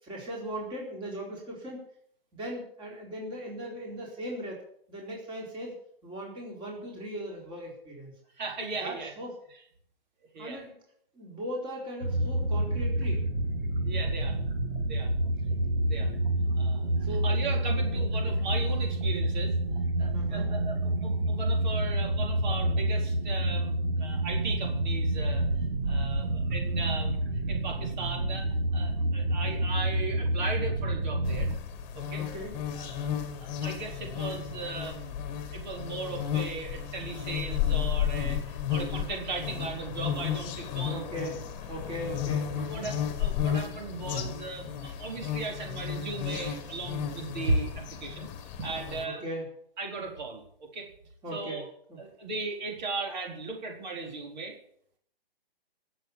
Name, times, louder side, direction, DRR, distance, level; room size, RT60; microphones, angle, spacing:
voice 1, 0.0-1.8 2.3-4.6 4.9-5.7 6.0-8.1 8.8-9.3 10.4-10.7 11.1-13.2 17.0-17.3 20.1-20.5 32.2-32.5 40.9-42.9 49.0-49.5 51.2-51.6 51.9-52.0, equal, 15° right, -1 dB, 4.4 m, -38 dB
voice 2, 8.3-9.1 10.3-10.6 13.8-14.4 14.9-15.1 15.8-16.1 16.6-19.6 20.0-25.4 25.9-27.2 27.5-31.5 31.9-32.2 32.7-33.1 33.4-35.2 35.5-41.0 42.7-48.3 48.6-49.2 49.8-50.9 51.3-51.6 52.0-54.6, right 3 dB, 50° right, 1 dB, 4.4 m, -37 dB
sound 1, 12.0-31.6, right 1 dB, 65° right, 2.5 m, -28 dB
sound 2, 31.2-49.0, left 9 dB, 25° left, 1.9 m, -33 dB
17.5 x 7.9 x 8.6 m, 0.66 s
hypercardioid pair, 145°, 30 cm